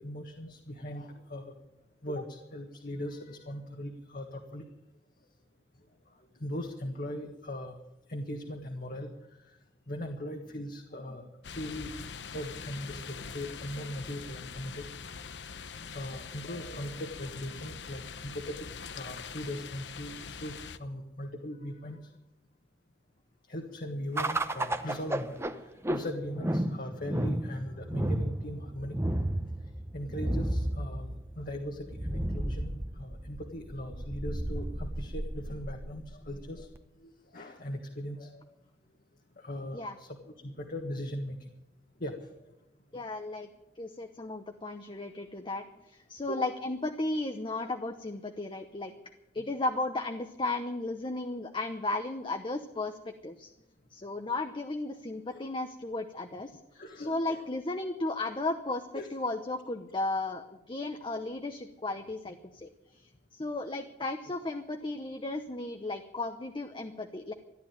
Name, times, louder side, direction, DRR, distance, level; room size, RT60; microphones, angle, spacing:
voice 1, 0.0-1.5 2.0-4.7 6.4-7.8 8.1-9.1 9.9-11.9 12.2-14.8 15.9-18.7 18.9-22.1 23.5-25.5 25.9-29.0 29.9-36.7 37.0-38.4 39.4-41.4 42.0-42.1 46.3-46.5 55.3-55.4 56.7-57.4 58.9-59.1, equal, 55° left, 2 dB, 1.6 m, -39 dB
sound 1, 11.4-20.8, left 6 dB, 90° left, 0.8 m, -43 dB
sound 2, 24.2-36.8, right 1 dB, 15° right, 0.9 m, -33 dB
voice 2, 42.9-43.5 43.8-48.9 49.3-53.5 53.9-58.8 59.1-62.7 62.9-67.3, left 2 dB, 30° left, 6 dB, 0.9 m, -35 dB
14.5 x 11.0 x 9.0 m, 0.90 s
head